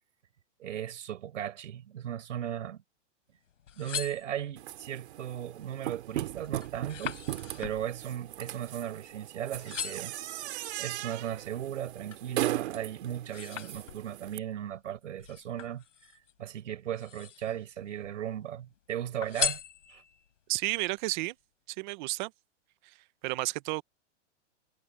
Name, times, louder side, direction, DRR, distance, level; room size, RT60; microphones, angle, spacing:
voice 1, 0.6-2.8 3.8-7.2 7.6-10.1 10.5-15.8 16.4-19.6 19.9-20.0, right 10 dB, 80° right, 5.6 m, -37 dB
sound 1, 3.5-4.8 5.4-5.8 6.1-9.2 9.5-10.2 10.8-12.3 12.7-14.3 15.2-16.3 16.9-17.7 18.0-18.7 19.2-20.3 20.8-20.9, left 8 dB, 90° left, 5.6 m, -39 dB
sound 2, 4.6-14.4, right 15 dB, 60° right, 3.3 m, -38 dB
voice 2, 20.5-21.3 21.7-22.3 22.8-22.9 23.2-23.8, right 22 dB, 40° right, 1.0 m, -32 dB
hypercardioid pair, 150°, 37 cm